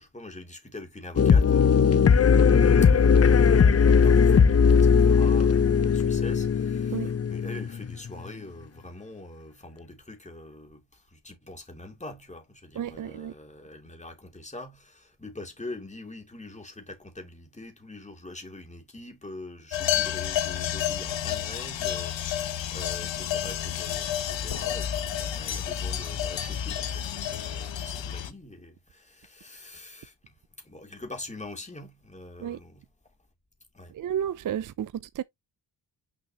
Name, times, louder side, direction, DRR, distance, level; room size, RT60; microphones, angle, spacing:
voice 1, 0.0-1.8 2.8-30.1 30.6-32.8 33.7-34.0, left 2 dB, 15° left, 2.7 m, -44 dB
sound 1, 1.2-8.1, left 6 dB, 35° left, 0.6 m, -19 dB
voice 2, 12.8-13.3 32.4-32.6 33.9-35.2, right 9 dB, 45° right, 0.5 m, -32 dB
sound 2, 19.7-28.3, left 10 dB, 80° left, 1.1 m, -30 dB
6.2 x 5.6 x 2.9 m
cardioid pair, 85°, 44 cm